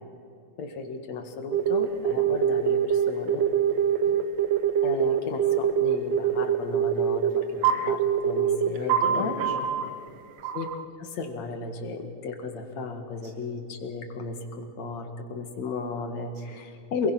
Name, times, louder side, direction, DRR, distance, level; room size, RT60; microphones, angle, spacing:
voice 1, 0.6-3.4 4.8-7.4 7.7-9.3 10.5-10.7 11.0-17.1, left 4 dB, 65° left, 5 dB, 3.1 m, -34 dB
sound 1, 1.5-9.9 10.4-10.9, right 8 dB, 65° right, 2.2 m, -24 dB
voice 2, 3.7-4.1 7.3-7.8 8.8-10.4 13.2-13.4 16.5-16.6, right 1 dB, 85° right, 0 dB, 5.5 m, -40 dB
27.5 x 22.0 x 6.0 m, 2.5 s
omnidirectional pair, 3.3 m